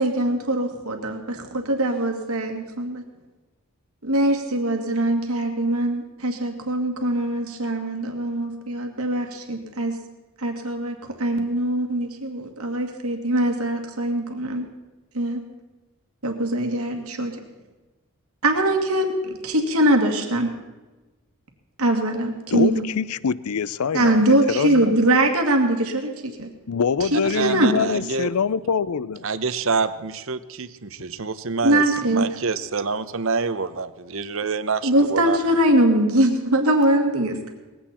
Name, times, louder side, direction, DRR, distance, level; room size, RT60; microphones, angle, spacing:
voice 1, 0.0-3.0 4.0-10.0 10.4-14.7 15.1-15.4 16.2-17.3 18.4-20.5 21.8-22.8 23.9-26.5 27.0-27.7 31.6-32.3 34.8-37.4, right 1 dB, 75° right, 4 dB, 2.2 m, -22 dB
voice 2, 22.5-25.0 26.7-29.3, left 5 dB, 80° left, 19 dB, 0.5 m, -25 dB
voice 3, 27.3-28.3 29.2-31.8 32.1-35.4, right 4 dB, 60° right, 13 dB, 0.8 m, -26 dB
20.0 x 16.0 x 4.3 m, 1.2 s
head